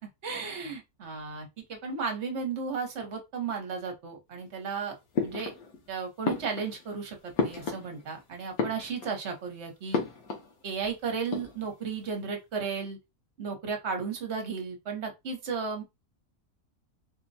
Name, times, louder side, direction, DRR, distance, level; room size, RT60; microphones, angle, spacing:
voice 1, 0.2-5.5 5.9-10.0 10.6-13.0 13.4-15.8, right 5 dB, 55° right, 1.2 m, -34 dB
sound 1, 5.1-5.9 6.2-8.2 8.5-9.3 9.9-10.5 10.8-10.9 11.2-11.9, left 4 dB, 90° left, 1.4 m, -33 dB
4.4 x 2.2 x 2.6 m
omnidirectional pair, 1.5 m